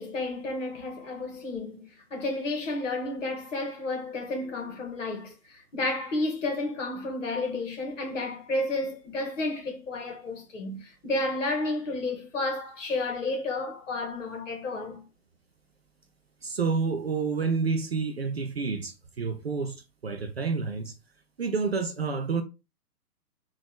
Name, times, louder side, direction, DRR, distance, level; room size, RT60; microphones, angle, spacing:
voice 1, 0.0-15.0, left 2 dB, 50° left, 1.6 m, -31 dB
voice 2, 16.4-21.0 21.4-22.4, right 4 dB, 45° right, 0.5 m, -29 dB
3.8 x 2.6 x 3.7 m
figure-of-eight pair, 130°, 47 cm